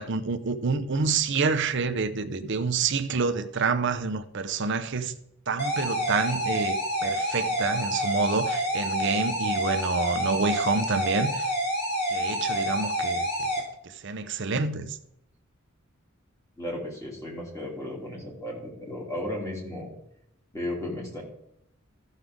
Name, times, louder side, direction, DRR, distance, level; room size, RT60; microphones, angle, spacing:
voice 1, 0.0-5.1 5.5-11.5 12.1-13.5 13.8-15.0, right 4 dB, 60° right, 0.7 m, -28 dB
sound 1, 5.6-13.6, equal, 50° left, 3.1 m, -28 dB
voice 2, 16.6-19.9 20.5-21.2, left 1 dB, 15° left, 3.0 m, -34 dB
14.0 x 6.6 x 3.7 m
head